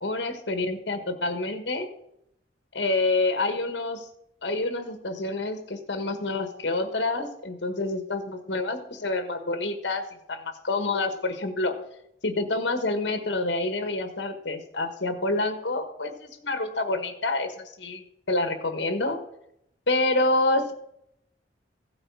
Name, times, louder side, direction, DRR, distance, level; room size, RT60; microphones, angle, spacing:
voice 1, 0.0-1.9 2.7-4.1 4.4-11.8 12.2-19.2 19.9-20.7, left 2 dB, 75° left, 7 dB, 1.5 m, -27 dB
15.5 x 8.8 x 4.8 m, 0.78 s
head